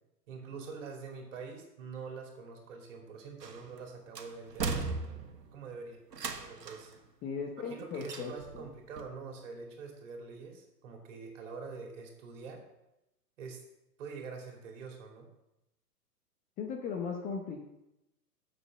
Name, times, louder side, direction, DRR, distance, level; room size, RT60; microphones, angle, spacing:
voice 1, 0.3-4.9 5.5-6.0 6.4-7.0 7.7-12.6 13.4-13.6 14.0-15.3, right 5 dB, 50° right, 1 dB, 2.8 m, -45 dB
sound 1, 3.4-3.8 4.2-5.5 6.1-6.9 8.0-8.7 9.0-9.1, right 4 dB, 80° right, 1.3 m, -37 dB
voice 2, 7.2-8.7 16.6-17.7, left 5 dB, 15° left, 2 dB, 0.8 m, -38 dB
7.0 x 6.8 x 7.3 m, 0.89 s
figure-of-eight pair, 115°, 48 cm